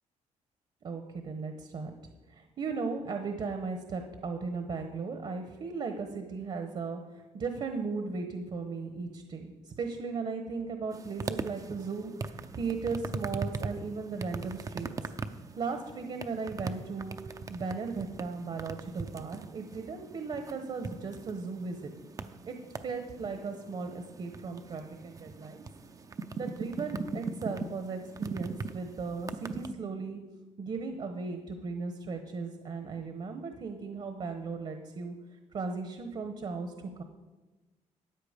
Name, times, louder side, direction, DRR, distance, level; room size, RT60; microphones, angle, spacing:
voice 1, 0.8-1.9 2.3-14.9 15.6-17.2 17.5-21.9 22.5-22.6 22.8-25.6 26.3-30.2 30.6-35.1 35.5-37.0, right 4 dB, 45° right, 6 dB, 1.1 m, -36 dB
sound 1, 10.9-29.7, right 4 dB, 30° right, 0.6 m, -40 dB
13.5 x 9.0 x 5.1 m, 1.2 s
cardioid pair, 120°, 12 cm